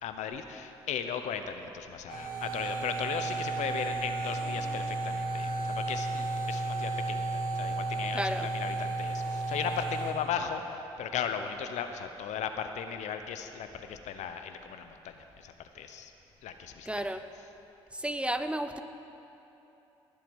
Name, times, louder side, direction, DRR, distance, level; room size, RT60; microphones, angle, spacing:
voice 1, 0.0-16.1 16.4-17.1, left 7 dB, 70° left, 7 dB, 0.8 m, -37 dB
sound 1, 2.1-10.1, right 2 dB, 85° right, 3.1 m, -33 dB
voice 2, 8.1-8.5 16.9-17.3 17.9-18.8, right 1 dB, 10° right, 9 dB, 0.8 m, -32 dB
20.0 x 7.6 x 5.4 m, 3.0 s
hypercardioid pair, 55°, 13 cm